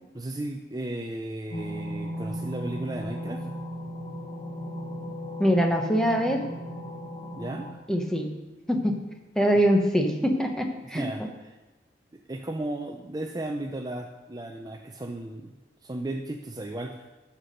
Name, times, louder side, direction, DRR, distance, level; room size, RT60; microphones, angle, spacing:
voice 1, 0.1-3.5 7.4-7.7 10.9-11.6 12.3-17.1, right 1 dB, 20° right, 4 dB, 0.5 m, -35 dB
sound 1, 1.5-7.7, equal, 30° left, 0.9 m, -36 dB
voice 2, 5.4-6.5 7.9-8.3 8.7-8.9 9.4-11.0, equal, 5° left, 3 dB, 0.9 m, -23 dB
10.0 x 5.9 x 6.6 m, 1.1 s
head